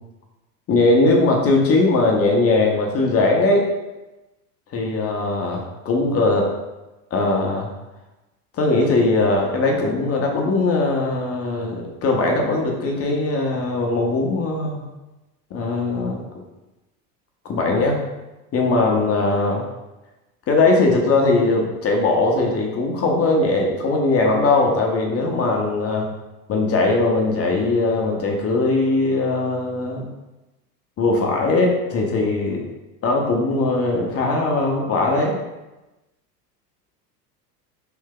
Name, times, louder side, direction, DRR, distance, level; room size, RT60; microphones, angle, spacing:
voice 1, 0.7-3.7 4.7-6.5 7.1-7.7 8.6-14.8 15.5-16.2 17.4-18.0 18.5-19.6 20.5-26.1 26.5-30.1 31.0-32.6 33.0-35.4, left 2 dB, 30° left, 0 dB, 0.7 m, -20 dB
3.3 x 2.7 x 3.7 m, 1.0 s
hypercardioid pair, 85°, 48 cm